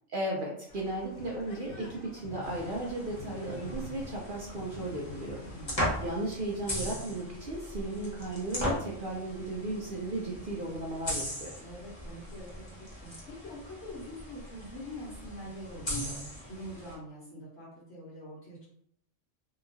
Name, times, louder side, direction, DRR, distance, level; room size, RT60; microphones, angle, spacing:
voice 1, 0.1-5.4 6.0-11.5, right 2 dB, 60° right, -3 dB, 0.5 m, -35 dB
sound 1, 0.7-6.0, left 3 dB, 85° left, 1.0 m, -47 dB
sound 2, 2.4-16.9, equal, 25° left, 0.9 m, -39 dB
voice 2, 5.4-5.9 11.6-18.6, equal, 60° left, -7 dB, 1.0 m, -44 dB
2.8 x 2.3 x 2.6 m, 0.70 s
omnidirectional pair, 1.4 m